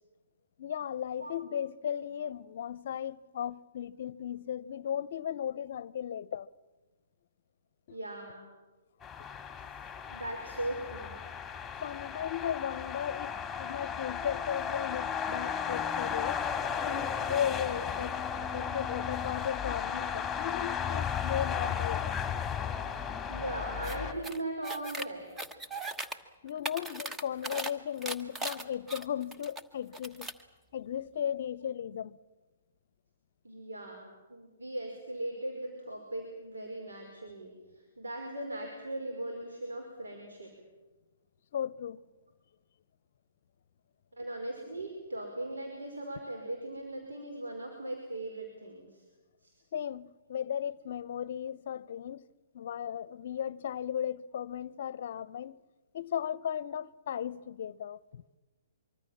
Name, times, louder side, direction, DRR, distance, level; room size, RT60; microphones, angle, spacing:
voice 1, 0.6-6.5 7.9-8.0 11.8-16.4 16.8-22.1 26.4-30.3 30.7-32.2 41.5-42.0 49.7-52.2 52.5-55.6 55.9-58.2, left 9 dB, 55° left, 0.7 m, -36 dB
voice 2, 7.9-8.5 10.1-11.2 23.3-25.3 33.4-37.5 38.0-40.5 44.2-49.0 49.4-49.6, right 1 dB, 80° right, 5.1 m, -39 dB
sound 1, 9.0-24.1, left 7 dB, 10° left, 2.4 m, -35 dB
sound 2, 23.8-24.0 24.2-25.1 25.4-26.2 26.5-27.7 28.0-29.6 29.9-30.4, right 2 dB, 10° right, 1.3 m, -38 dB
25.0 x 24.0 x 7.4 m
figure-of-eight pair, 125°, 0 cm